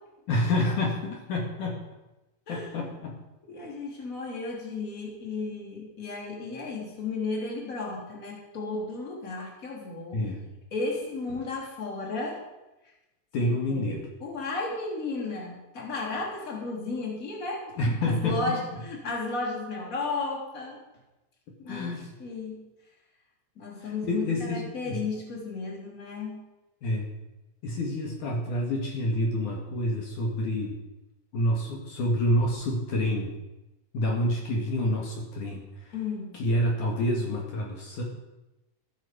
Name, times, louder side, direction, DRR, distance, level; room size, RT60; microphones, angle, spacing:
voice 1, 0.3-1.8 2.5-3.2 10.1-10.4 13.3-14.1 17.8-18.8 21.7-22.1 23.8-25.0 26.8-27.1 27.6-30.7 31.3-33.3 33.9-35.9 36.3-38.0, left 1 dB, 65° left, -1 dB, 3.3 m, -28 dB
voice 2, 2.5-2.9 3.4-10.2 10.7-12.4 13.4-20.8 21.6-22.6 23.5-26.4 35.9-36.4, left 3 dB, 25° left, -2 dB, 3.2 m, -34 dB
14.0 x 13.0 x 5.2 m, 1.0 s
omnidirectional pair, 4.0 m